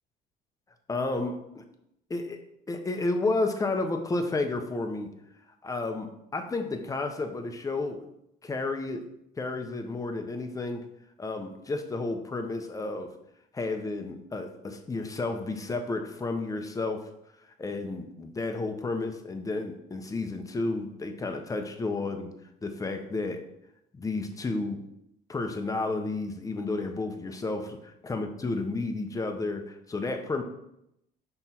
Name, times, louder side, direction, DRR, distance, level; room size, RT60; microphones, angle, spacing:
voice 1, 0.9-1.6 2.1-2.4 2.7-5.1 5.6-8.0 8.4-9.1 9.4-10.9 11.2-13.1 13.5-17.1 17.4-22.3 22.6-23.4 23.9-24.8 25.3-30.4, left 3 dB, 20° left, 5 dB, 0.9 m, -31 dB
6.0 x 4.3 x 4.4 m, 0.80 s
cardioid pair, 110°, 17 cm